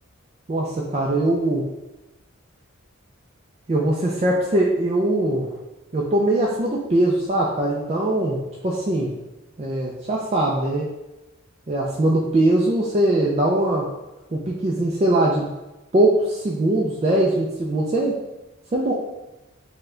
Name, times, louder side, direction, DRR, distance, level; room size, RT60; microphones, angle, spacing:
voice 1, 0.5-1.7 3.7-5.5 5.9-9.1 9.6-10.9 11.7-13.9 14.3-15.5 15.9-18.2 18.7-18.9, right 1 dB, 30° right, -3 dB, 0.3 m, -21 dB
4.5 x 2.2 x 3.7 m, 1.0 s
head